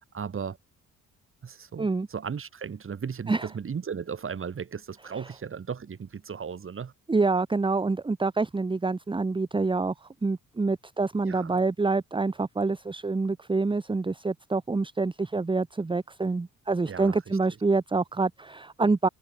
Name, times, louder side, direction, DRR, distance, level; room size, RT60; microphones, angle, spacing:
voice 1, 0.1-0.6 1.4-6.9 11.2-11.6 16.9-17.2, right 6 dB, 45° right, 6.1 m, -36 dB
voice 2, 7.1-19.1, right 3 dB, 15° right, 1.2 m, -26 dB
cardioid pair, 90°, 30 cm